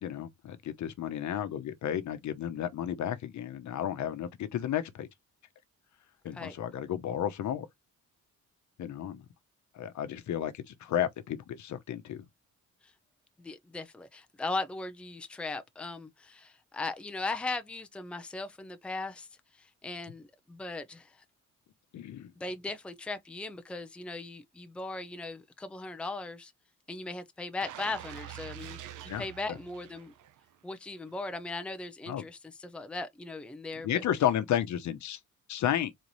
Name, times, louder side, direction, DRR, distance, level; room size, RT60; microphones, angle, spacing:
voice 1, 0.0-5.1 6.2-7.7 8.8-9.2 9.7-12.2 21.9-22.3 29.1-29.2 29.5-29.6 32.1-32.2 33.8-35.2 35.5-35.9, left 10 dB, 65° left, 0.9 m, -32 dB
voice 2, 13.4-19.3 19.6-21.1 22.4-26.5 26.9-28.8 29.2-30.1 30.6-34.0, left 3 dB, 5° left, 0.5 m, -38 dB
sound 1, 27.6-30.6 31.0-31.1, right 11 dB, 80° right, 0.7 m, -45 dB
4.2 x 3.2 x 4.0 m
cardioid pair, 155°, 31 cm